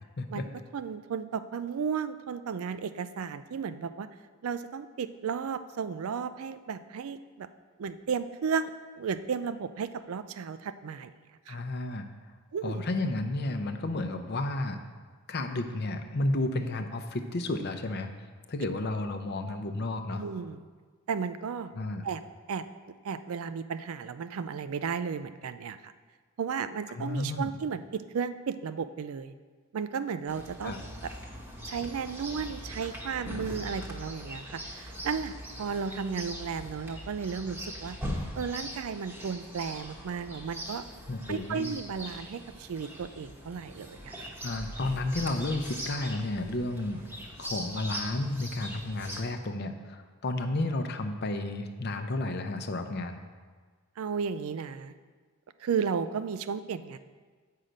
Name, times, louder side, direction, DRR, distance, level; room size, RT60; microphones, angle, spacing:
voice 1, 0.7-4.1 4.4-7.5 7.8-8.7 9.0-11.1 11.5-11.6 12.5-12.8 20.1-20.7 21.1-21.7 22.0-22.2 22.5-22.6 23.0-25.9 26.4-29.3 29.7-30.7 31.6-38.0 38.4-40.9 41.3-44.3 54.0-54.9 55.6-57.0, right 6 dB, 75° right, 12 dB, 0.4 m, -34 dB
voice 2, 11.5-12.1 12.6-14.8 15.3-18.1 18.5-20.2 21.7-22.0 26.9-27.5 30.6-30.8 41.1-41.7 44.4-47.0 47.4-53.2, left 2 dB, 50° left, 7 dB, 0.6 m, -32 dB
Chirp tweet, 30.3-49.2, equal, 10° right, 1.0 m, -41 dB
7.9 x 5.7 x 5.1 m, 1.5 s
head